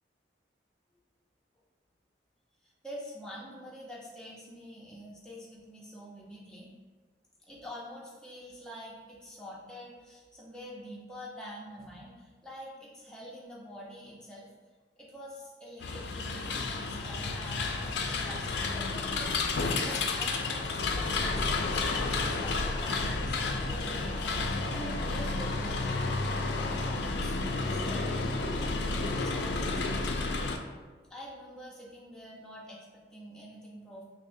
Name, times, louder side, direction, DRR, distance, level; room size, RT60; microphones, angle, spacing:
voice 1, 2.6-6.7 7.4-14.5 15.0-28.6 28.9-30.6 31.1-34.0, equal, 5° left, -5 dB, 0.7 m, -46 dB
sound 1, 15.8-30.6, left 3 dB, 70° left, 0.4 m, -31 dB
6.0 x 2.1 x 2.6 m, 1.4 s
head